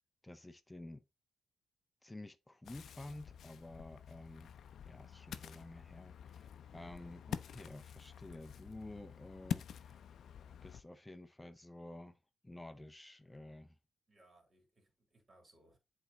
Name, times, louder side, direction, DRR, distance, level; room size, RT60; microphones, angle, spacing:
voice 1, 0.2-1.0 2.0-4.5 4.8-10.0 10.6-12.2 12.4-13.8, left 1 dB, 15° left, 0.6 m, -51 dB
Ocean, 2.6-10.8, left 8 dB, 70° left, 0.5 m, -47 dB
voice 2, 14.1-15.8, right 1 dB, 40° right, 3.0 m, -66 dB
8.1 x 3.4 x 3.8 m
cardioid pair, 65°, 0 cm